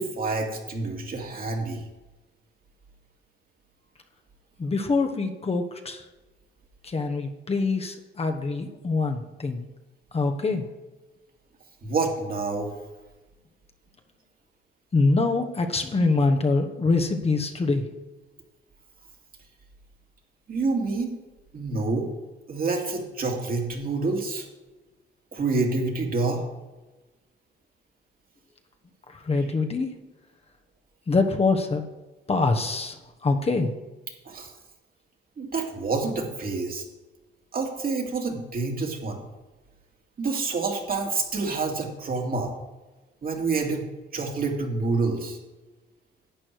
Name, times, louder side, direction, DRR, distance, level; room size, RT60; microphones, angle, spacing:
voice 1, 0.0-1.8 11.8-12.7 20.5-21.2 21.5-22.1 22.5-24.5 25.3-26.4 34.2-34.5 35.4-36.9 37.5-39.2 40.2-42.5 43.2-43.8 44.1-45.4, right 3 dB, 45° right, 2 dB, 2.5 m, -27 dB
voice 2, 4.6-6.0 6.8-9.7 10.1-10.7 14.9-17.8 29.2-29.9 31.1-31.8 32.3-32.9 33.2-33.7, left 3 dB, 30° left, 5 dB, 1.2 m, -24 dB
11.5 x 8.7 x 4.7 m, 1.1 s
cardioid pair, 90°, 20 cm